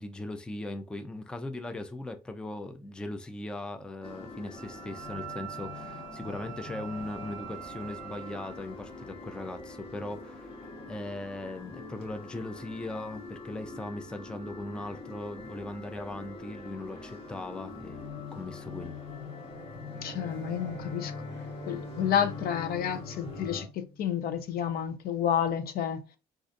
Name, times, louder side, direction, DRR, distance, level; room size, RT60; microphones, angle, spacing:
voice 1, 0.0-19.0, left 2 dB, 5° left, 0.4 m, -39 dB
sound 1, 4.0-23.7, left 3 dB, 35° left, 1.1 m, -43 dB
Wind instrument woodwind instrument, 4.6-8.6, right 19 dB, 55° right, 0.4 m, -44 dB
Bowed string instrument, 19.9-24.6, left 1 dB, 90° left, 1.1 m, -44 dB
voice 2, 20.0-21.1 21.7-26.0, left 9 dB, 65° left, 0.6 m, -30 dB
3.8 x 2.5 x 2.5 m
cardioid pair, 110°, 17 cm